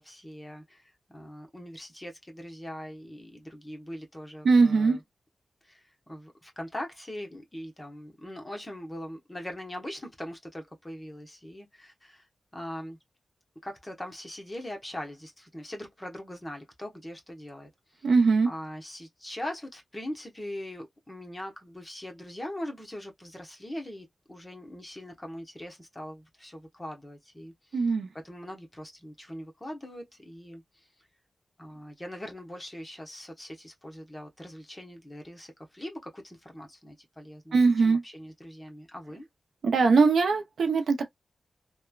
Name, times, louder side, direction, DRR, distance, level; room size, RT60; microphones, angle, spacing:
voice 1, 0.0-5.0 5.6-5.8 6.1-12.2 12.5-13.0 13.6-18.1 18.4-27.8 28.2-30.6 31.6-39.3, left 1 dB, 15° left, 0.9 m, -41 dB
voice 2, 4.4-5.0 18.0-18.5 27.7-28.1 37.5-38.0 39.6-41.1, right 4 dB, 85° right, 0.5 m, -21 dB
3.1 x 2.1 x 2.3 m
wide cardioid pair, 115°, 0 cm